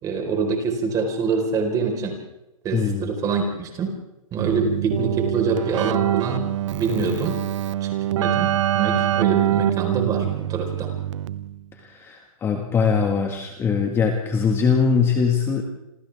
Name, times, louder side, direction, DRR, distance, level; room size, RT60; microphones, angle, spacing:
voice 1, 0.0-2.2 2.6-4.0 4.3-7.4 7.8-10.9, right 4 dB, 20° right, 3 dB, 4.5 m, -25 dB
voice 2, 2.7-3.1 11.8-15.6, left 5 dB, 15° left, 3 dB, 1.8 m, -22 dB
Keyboard (musical), 4.4-11.7, right 12 dB, 55° right, 0.9 m, -24 dB
29.0 x 27.5 x 3.6 m, 0.94 s
hypercardioid pair, 155°, 18 cm